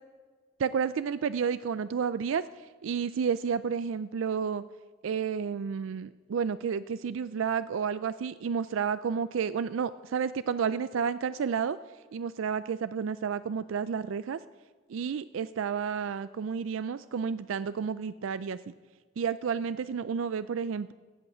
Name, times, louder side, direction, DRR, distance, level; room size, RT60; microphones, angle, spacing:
voice 1, 0.6-4.6 5.0-11.8 12.1-14.4 14.9-18.7 19.2-20.9, right 6 dB, 75° right, 15 dB, 0.4 m, -31 dB
15.5 x 8.5 x 7.7 m, 1.4 s
head